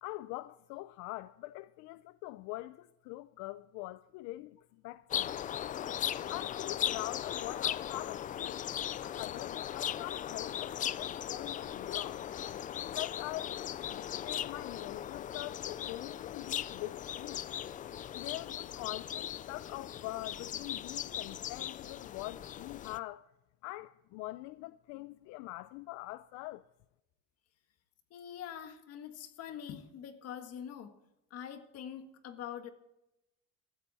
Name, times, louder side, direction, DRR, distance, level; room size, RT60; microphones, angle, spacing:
voice 1, 0.0-5.5 6.3-8.6 9.0-12.2 12.9-13.6 13.9-17.4 18.1-23.3 23.6-26.6, left 19 dB, 80° left, 0.5 m, -44 dB
sound 1, 5.1-23.0, left 10 dB, 30° left, 0.4 m, -38 dB
voice 2, 28.1-31.0 31.3-32.7, left 9 dB, 55° left, 1.7 m, -44 dB
15.5 x 13.5 x 4.2 m
cardioid pair, 145°, 29 cm